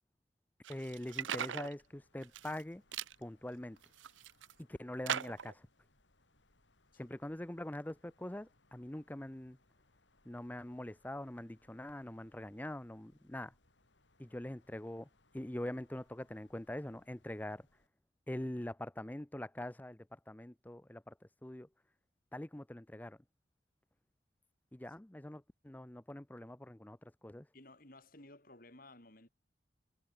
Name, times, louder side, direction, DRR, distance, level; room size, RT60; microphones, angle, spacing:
sound 1, 0.6-1.7 2.2-2.6 2.9-3.1 3.8-4.5 5.1-5.5, right 9 dB, 90° right, 0.6 m, -39 dB
voice 1, 0.7-2.8 3.2-3.8 4.7-5.7 7.0-9.6 10.2-13.5 14.2-15.1 15.3-17.7 18.3-21.1 21.4-21.7 22.3-23.2 24.7-27.5, left 1 dB, 10° left, 0.5 m, -43 dB
Wind, 1.1-17.9, left 2 dB, 75° left, 5.1 m, -73 dB
voice 2, 27.5-29.3, left 2 dB, 50° left, 4.5 m, -56 dB
head